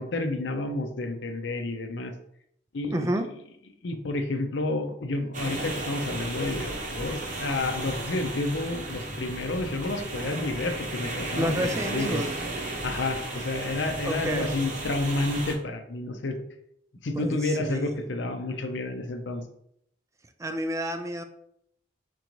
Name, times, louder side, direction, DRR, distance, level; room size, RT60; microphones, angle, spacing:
voice 1, 0.0-2.1 2.7-3.0 3.8-12.2 12.8-16.4 17.0-19.4, left 2 dB, 65° left, 7 dB, 0.6 m, -30 dB
voice 2, 2.9-3.3 11.4-12.4 14.0-14.5 17.1-18.0 20.4-21.2, right 1 dB, 15° right, 7 dB, 0.3 m, -30 dB
sound 1, 5.3-15.5, right 2 dB, 40° right, 0.9 m, -34 dB
4.5 x 3.8 x 3.0 m, 0.72 s
head